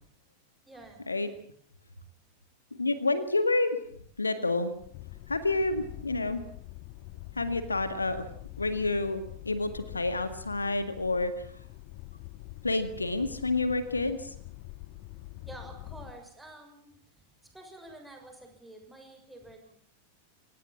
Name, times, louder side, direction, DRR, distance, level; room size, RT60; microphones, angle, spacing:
voice 1, 0.6-1.1 15.5-16.9 17.4-19.7, right 2 dB, 5° right, 3 dB, 6.3 m, -49 dB
voice 2, 2.8-3.8 4.2-4.7 5.3-6.4 7.4-8.3 8.6-11.5 12.6-14.3, left 2 dB, 80° left, 11 dB, 1.9 m, -29 dB
sound 1, 4.8-16.1, left 18 dB, 45° left, 2.1 m, -45 dB
25.5 x 18.0 x 7.5 m, 0.62 s
figure-of-eight pair, 90°, 0 cm